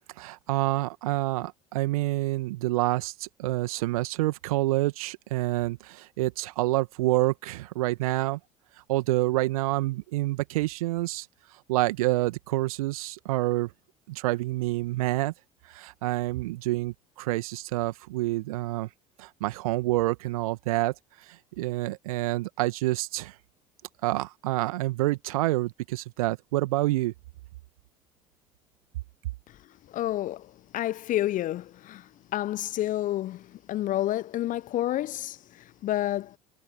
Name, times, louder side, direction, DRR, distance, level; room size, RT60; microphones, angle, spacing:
voice 1, 0.2-8.4 8.9-11.3 11.7-13.7 14.1-15.3 15.7-18.9 19.2-20.9 21.6-23.3 24.0-27.1, right 18 dB, 65° right, 2.0 m, -27 dB
voice 2, 29.9-32.0 32.3-35.4 35.8-36.3, left 14 dB, 45° left, 0.9 m, -29 dB
figure-of-eight pair, 60°, 19 cm